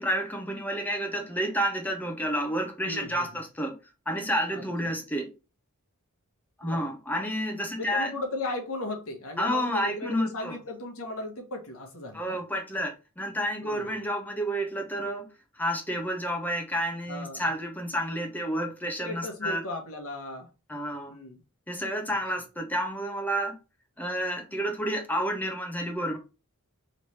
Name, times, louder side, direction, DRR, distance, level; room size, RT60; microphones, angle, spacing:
voice 1, 0.0-3.8 4.1-5.3 6.6-8.1 9.4-10.6 12.1-15.3 15.5-19.6 20.7-21.2 21.7-23.6 24.0-26.2, equal, 10° left, 0.7 m, -30 dB
voice 2, 2.8-3.3 4.5-4.6 6.6-6.8 7.8-12.4 13.6-13.9 17.1-17.5 19.0-20.5 21.1-21.4 22.1-22.2, left 2 dB, 65° left, 1.0 m, -36 dB
3.2 x 3.2 x 4.1 m
head